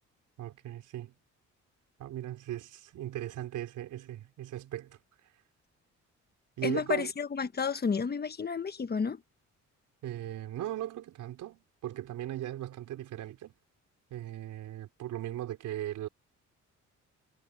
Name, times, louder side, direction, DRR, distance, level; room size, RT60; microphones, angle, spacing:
voice 1, 0.4-1.1 2.0-5.0 6.6-7.1 10.0-13.5 14.1-16.1, right 13 dB, 85° right, 4.6 m, -38 dB
voice 2, 6.6-9.2, left 5 dB, 35° left, 1.3 m, -31 dB
cardioid pair, 90°, 30 cm